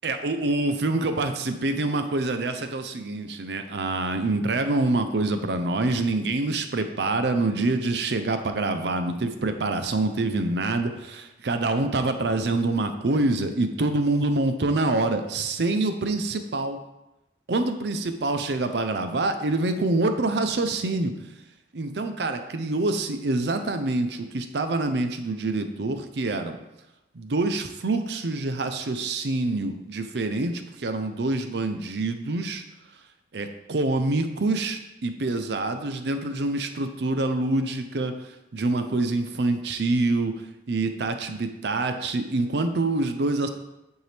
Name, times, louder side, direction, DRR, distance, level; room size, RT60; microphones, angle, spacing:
voice 1, 0.0-16.8 17.5-21.1 21.7-26.6 27.1-32.6 33.3-38.2 38.5-40.3 40.7-43.5, right 2 dB, 65° right, 8 dB, 0.6 m, -26 dB
9.3 x 4.6 x 3.4 m, 0.92 s
head